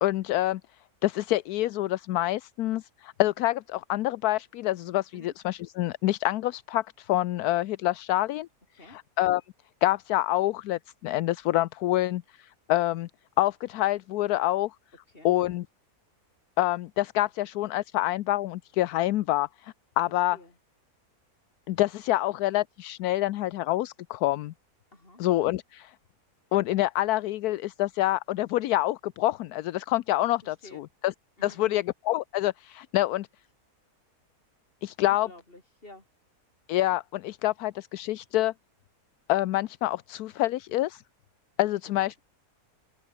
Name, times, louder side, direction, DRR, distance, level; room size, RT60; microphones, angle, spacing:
voice 1, 0.0-0.6 1.0-8.5 8.9-9.4 9.8-13.1 13.4-14.7 15.2-15.6 16.6-20.4 21.7-24.5 25.2-25.9 26.5-30.6 31.0-31.1 31.4-33.3 34.8-35.3 36.7-38.5 39.3-41.0 41.6-42.2, left 15 dB, 80° left, 1.1 m, -27 dB
voice 2, 24.9-25.2 30.4-30.8 31.4-31.8 35.0-36.0 41.9-42.2, left 1 dB, 35° left, 6.2 m, -50 dB
open air
omnidirectional pair, 1.6 m